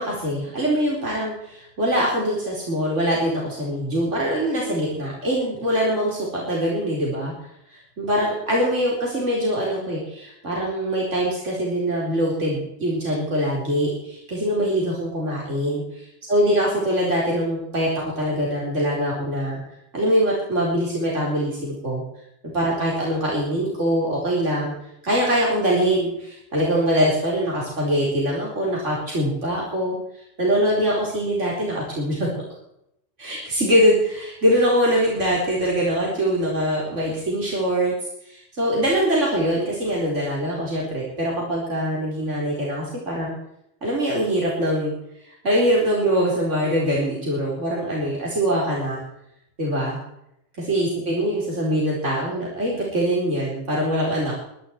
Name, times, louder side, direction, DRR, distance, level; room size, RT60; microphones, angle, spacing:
voice 1, 0.0-7.3 7.7-17.9 18.2-19.6 19.9-22.0 22.5-24.7 25.0-30.0 30.4-32.3 33.2-37.9 38.2-43.3 43.8-44.9 45.4-49.0 49.6-50.0 50.6-54.3, equal, 75° right, -4 dB, 4.7 m, -23 dB
23.0 x 11.0 x 4.6 m, 0.76 s
omnidirectional pair, 1.3 m